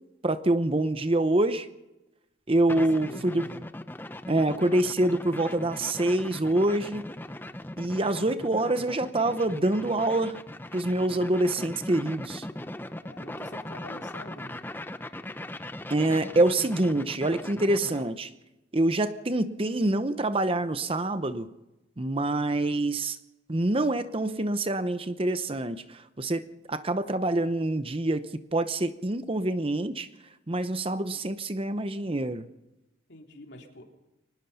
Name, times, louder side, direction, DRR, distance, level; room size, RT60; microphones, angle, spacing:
voice 1, 0.2-1.7 2.5-3.5 4.3-7.1 7.8-10.4 10.7-12.5 15.9-18.3 18.7-21.5 22.0-23.2 23.5-30.1 30.5-32.5, right 1 dB, 30° right, 0.8 m, -26 dB
voice 2, 2.7-3.7 13.0-14.6 33.1-33.9, left 1 dB, 60° left, 3.6 m, -46 dB
sound 1, 2.7-18.1, left 1 dB, 10° left, 0.6 m, -40 dB
23.5 x 20.0 x 5.6 m
head